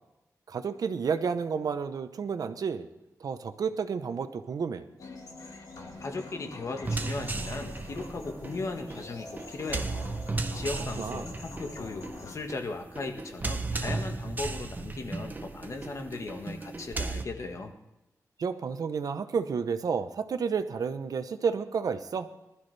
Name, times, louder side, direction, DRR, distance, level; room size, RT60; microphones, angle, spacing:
voice 1, 0.5-2.9 3.2-4.8 11.0-11.3 18.4-22.3, right 6 dB, 75° right, 10 dB, 0.8 m, -31 dB
sound 1, 5.0-12.4, left 3 dB, 75° left, 2.3 m, -45 dB
voice 2, 6.0-10.1 10.5-17.7, left 3 dB, 55° left, 5 dB, 1.4 m, -37 dB
sound 2, 6.8-17.2, right 3 dB, 30° right, 0.7 m, -35 dB
20.5 x 12.5 x 3.4 m, 0.94 s
wide cardioid pair, 160°, 6 cm